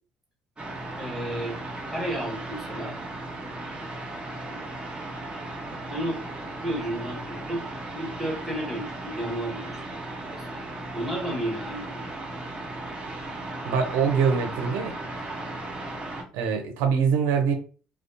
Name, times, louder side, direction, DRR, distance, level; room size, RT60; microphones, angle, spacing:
sound 1, 0.6-16.2, right 2 dB, 25° right, 1.0 m, -36 dB
voice 1, 1.0-1.6 1.9-3.0 4.5-4.9 5.9-6.2 6.6-7.7 7.9-10.0 10.3-12.0, right 1 dB, 5° right, -3 dB, 1.3 m, -33 dB
voice 2, 13.6-15.0 16.3-17.5, right 6 dB, 75° right, 5 dB, 0.6 m, -23 dB
2.4 x 2.3 x 2.6 m, 0.37 s
hypercardioid pair, 65°, 4 cm